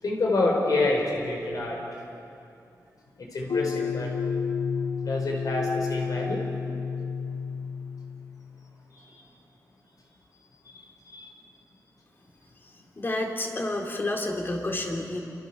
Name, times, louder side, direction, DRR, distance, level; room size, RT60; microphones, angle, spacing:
voice 1, 0.0-1.8 3.2-4.1 5.0-6.4 8.9-9.2 10.6-11.3, left 2 dB, 65° left, 0 dB, 4.9 m, -28 dB
sound 1, 3.5-8.7, left 5 dB, 85° left, 1.0 m, -31 dB
voice 2, 13.0-15.2, left 1 dB, 35° left, 1 dB, 3.7 m, -29 dB
29.5 x 26.5 x 7.2 m, 2.5 s
wide cardioid pair, 160°, 7 cm